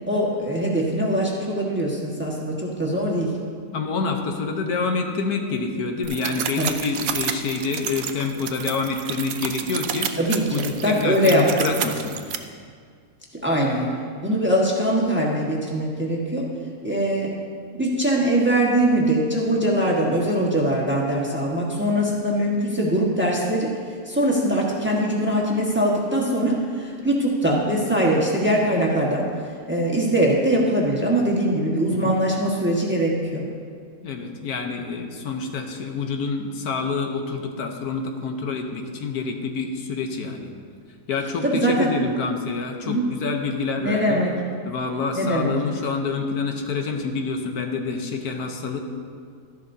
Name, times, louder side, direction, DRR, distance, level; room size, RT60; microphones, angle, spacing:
voice 1, 0.1-3.3 6.6-6.7 10.2-11.4 13.4-13.9 14.2-16.4 16.8-17.3 17.8-23.7 24.0-29.3 29.7-33.4 41.4-41.9 42.8-43.1 43.8-44.3 45.1-45.5, right 1 dB, 10° right, -3 dB, 1.3 m, -22 dB
voice 2, 3.7-10.1 10.5-12.1 32.0-32.1 34.0-40.5 41.1-44.2 44.6-48.8, left 4 dB, 75° left, 3 dB, 1.4 m, -27 dB
sound 1, 6.0-12.4, right 8 dB, 65° right, 1.0 m, -30 dB
13.0 x 11.0 x 2.7 m, 2.1 s
omnidirectional pair, 1.6 m